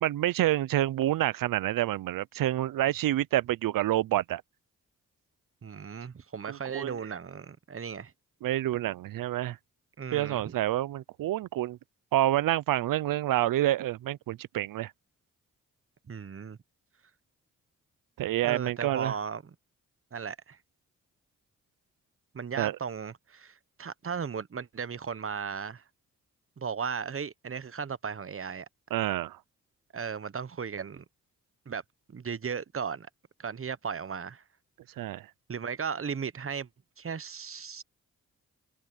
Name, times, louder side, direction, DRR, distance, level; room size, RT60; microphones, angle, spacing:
voice 1, 0.0-4.4 6.5-7.0 8.4-9.6 10.1-11.8 12.1-14.9 18.2-19.1 22.6-22.8 28.9-29.4 35.0-35.3, right 14 dB, 80° right, 0.6 m, -28 dB
voice 2, 5.6-8.1 10.0-10.5 16.1-16.6 18.4-19.5 20.1-20.6 22.3-25.8 26.6-28.7 29.9-31.0 31.7-31.8 32.1-33.1 33.4-34.4 35.5-36.7 37.0-37.8, right 6 dB, 40° right, 1.1 m, -36 dB
supercardioid pair, 45°, 33 cm